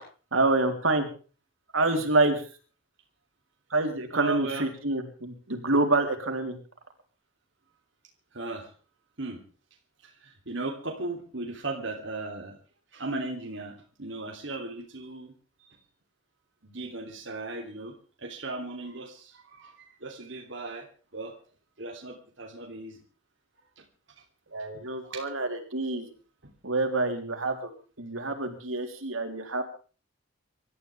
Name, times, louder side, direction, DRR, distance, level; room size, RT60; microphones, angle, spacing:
voice 1, 0.3-1.1 1.7-2.4 3.7-6.6 24.5-26.1 26.6-27.7 28.0-29.6, right 2 dB, 80° right, 4 dB, 3.7 m, -27 dB
voice 2, 4.1-4.7 8.3-8.7 9.2-9.4 10.0-12.6 12.9-15.3 15.6-15.8 16.6-19.7 20.0-21.4 21.8-23.0 23.8-23.9 25.0-25.2, right 3 dB, 60° right, 1 dB, 3.2 m, -37 dB
25.5 x 14.0 x 3.5 m, 0.38 s
head